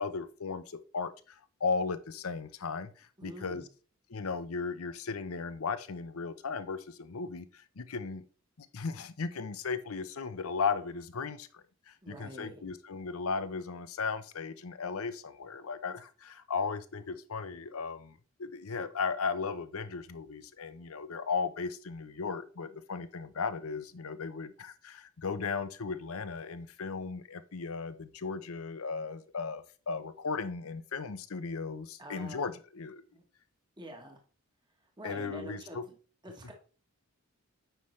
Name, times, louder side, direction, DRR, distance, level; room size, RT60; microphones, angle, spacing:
voice 1, 0.0-3.6 4.1-8.3 8.6-33.0 35.0-35.9, left 5 dB, 75° left, 12 dB, 0.7 m, -36 dB
voice 2, 3.2-3.7 12.0-12.6 32.0-32.5 33.1-33.2 33.8-34.2 35.0-35.9 36.2-36.5, equal, 20° right, 2 dB, 1.3 m, -46 dB
9.1 x 5.6 x 3.2 m, 0.38 s
head